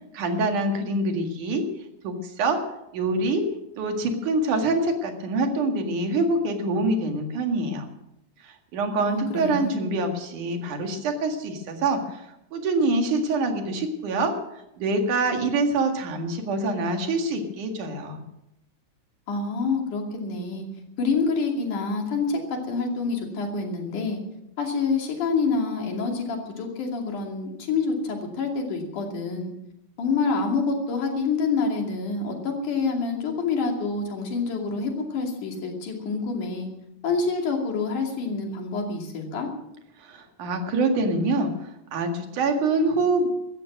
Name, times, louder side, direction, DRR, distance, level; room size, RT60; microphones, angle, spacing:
voice 1, 0.1-1.7 2.0-2.6 2.9-3.5 3.8-7.9 8.4-18.2 40.0-43.3, right 2 dB, 90° right, 4 dB, 3.5 m, -25 dB
voice 2, 9.0-9.8 19.3-20.7 21.0-24.2 24.6-29.5 30.0-36.7 37.0-39.5, left 4 dB, 90° left, 2 dB, 4.1 m, -27 dB
16.0 x 14.0 x 6.1 m, 0.84 s
omnidirectional pair, 3.4 m